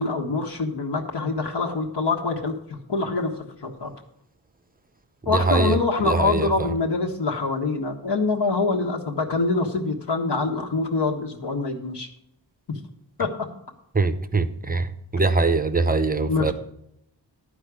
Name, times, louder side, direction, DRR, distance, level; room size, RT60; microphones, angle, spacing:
voice 1, 0.0-2.5 2.9-3.9 5.2-12.1 13.2-13.5 16.3-16.5, left 3 dB, 60° left, 1.4 m, -25 dB
voice 2, 5.3-5.8 6.0-6.5 13.9-14.9 15.1-16.5, right 3 dB, 20° right, 0.7 m, -22 dB
12.0 x 4.9 x 8.2 m
wide cardioid pair, 140°, 46 cm